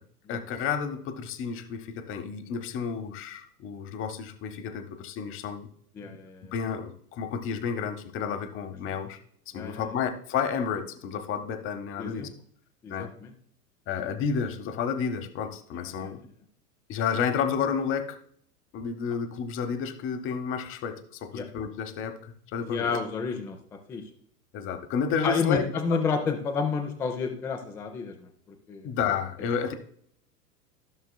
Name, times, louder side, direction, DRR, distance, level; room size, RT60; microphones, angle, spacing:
voice 1, 0.3-5.7 6.0-6.2 6.5-9.2 9.5-12.3 12.9-13.1 13.9-16.2 16.9-18.2 18.7-23.0 24.5-25.6 25.9-26.0 28.8-29.7, left 7 dB, 25° left, 9 dB, 0.9 m, -31 dB
voice 2, 6.0-6.5 9.5-9.9 12.0-12.3 12.8-13.3 15.7-16.1 21.3-21.5 22.6-23.6 23.9-24.0 25.2-28.3 28.7-28.9, left 5 dB, 5° left, 5 dB, 0.3 m, -30 dB
14.5 x 6.4 x 2.2 m, 0.65 s
figure-of-eight pair, 95°, 47 cm